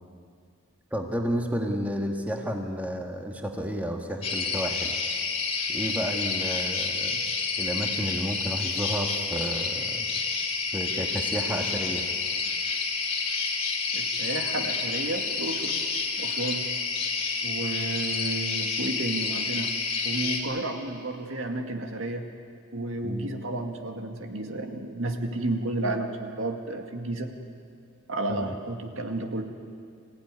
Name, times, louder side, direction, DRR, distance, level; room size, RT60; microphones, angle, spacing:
voice 1, 0.9-4.9 5.7-7.2 7.6-10.0 10.7-12.0 23.0-23.3 28.3-28.5, equal, 5° right, 2 dB, 1.7 m, -31 dB
sound 1, 4.2-20.4, left 4 dB, 30° left, 2.5 m, -29 dB
voice 2, 13.9-15.7 16.2-16.7 17.4-19.7 20.0-22.3 22.7-27.3 28.1-29.4, right 2 dB, 65° right, 4 dB, 2.0 m, -32 dB
26.0 x 15.5 x 9.7 m, 2.2 s
head